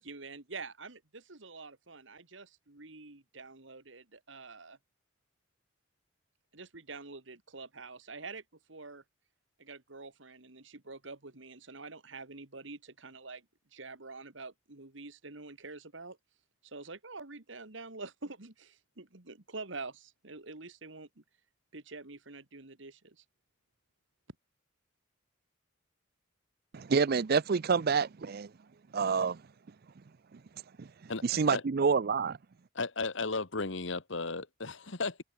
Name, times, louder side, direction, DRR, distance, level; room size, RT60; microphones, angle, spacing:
voice 1, 0.0-4.8 6.5-8.4 8.7-9.0 9.6-13.5 13.7-16.2 16.6-21.2 21.7-23.2, right 3 dB, 65° right, 2.1 m, -46 dB
voice 2, 26.7-28.5 28.9-29.4 30.3-30.4 30.8-30.9 31.2-32.4, right 5 dB, 50° right, 0.5 m, -28 dB
voice 3, 32.7-35.2, left 3 dB, 70° left, 1.6 m, -34 dB
head